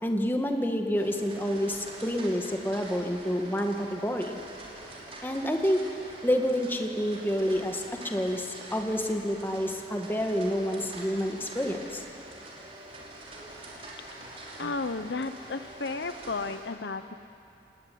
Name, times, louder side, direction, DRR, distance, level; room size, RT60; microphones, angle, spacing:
voice 1, 0.0-4.4 5.2-5.8 6.2-12.0, equal, 10° left, 3 dB, 1.9 m, -28 dB
sound 1, 1.0-16.6, right 1 dB, 35° right, 5.2 m, -45 dB
voice 2, 14.6-17.1, left 3 dB, 75° left, 10 dB, 0.9 m, -33 dB
30.0 x 19.0 x 9.5 m, 2.8 s
head